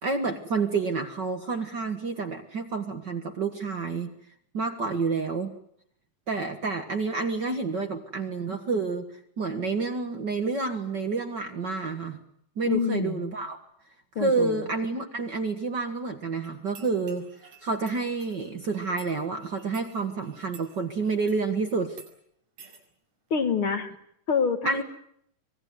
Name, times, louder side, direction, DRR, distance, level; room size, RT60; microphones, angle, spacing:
voice 1, 0.0-4.1 4.5-5.5 6.3-9.1 9.4-12.2 12.6-13.6 14.2-17.3 17.6-22.0 24.7-24.8, right 4 dB, 45° right, 6 dB, 1.8 m, -29 dB
voice 2, 12.6-13.3 14.2-14.7 23.3-23.9 24.3-24.8, left 6 dB, 50° left, 7 dB, 2.2 m, -27 dB
sound 1, 16.4-21.5 21.9-22.1 22.6-22.8, right 6 dB, 70° right, 7.5 m, -52 dB
25.5 x 20.0 x 9.6 m, 0.72 s
omnidirectional pair, 3.4 m